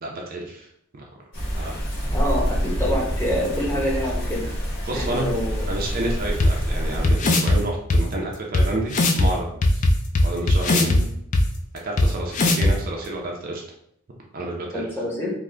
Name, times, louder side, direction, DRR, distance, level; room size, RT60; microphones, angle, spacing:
voice 1, 0.0-0.7 0.9-1.0 1.5-1.8 4.9-5.3 5.7-9.8 10.2-11.0 11.8-13.6 14.3-14.9, right 2 dB, 40° right, -1 dB, 0.4 m, -30 dB
sound 1, 1.3-7.1, equal, 50° left, 1.3 m, -27 dB
voice 2, 2.1-4.6 4.9-5.7 10.8-11.1 14.7-15.3, equal, 10° left, -4 dB, 0.7 m, -27 dB
sound 2, 6.4-6.5 7.0-7.6 7.9-8.0 8.5-8.6 8.9-9.3 9.6-11.0 11.3-11.4 12.0-12.1 12.3-12.7, left 2 dB, 35° left, 0.3 m, -18 dB
3.6 x 2.1 x 3.2 m, 0.74 s
head